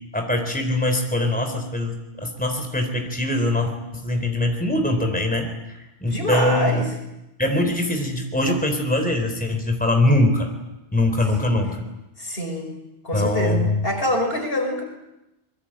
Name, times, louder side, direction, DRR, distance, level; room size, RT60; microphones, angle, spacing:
voice 1, 0.1-6.8 7.4-10.5 10.9-11.9 13.1-13.8, left 1 dB, 5° left, 4 dB, 3.8 m, -22 dB
voice 2, 6.1-6.9 11.4-11.5 12.2-12.7 13.0-14.8, equal, 55° left, 4 dB, 5.5 m, -25 dB
26.5 x 22.5 x 8.8 m, 0.95 s
omnidirectional pair, 1.2 m